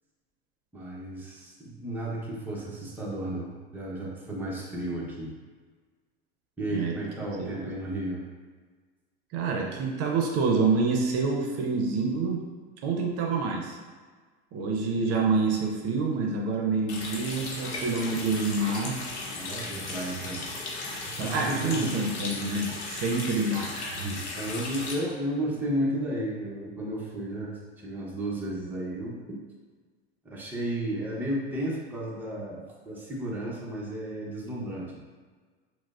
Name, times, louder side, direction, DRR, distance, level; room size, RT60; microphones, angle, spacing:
voice 1, 0.7-5.3 6.6-8.2 19.3-20.5 20.7-21.9 24.3-29.4 30.2-35.0, right 1 dB, 5° right, -5 dB, 0.7 m, -33 dB
voice 2, 7.4-7.7 9.3-12.4 12.8-13.8 14.5-19.0 21.2-24.2, right 4 dB, 50° right, 1 dB, 0.6 m, -27 dB
Water tap faucet, 16.9-24.9, left 2 dB, 85° left, 0.8 m, -36 dB
4.6 x 2.0 x 2.4 m, 1.5 s
hypercardioid pair, 95°, 33 cm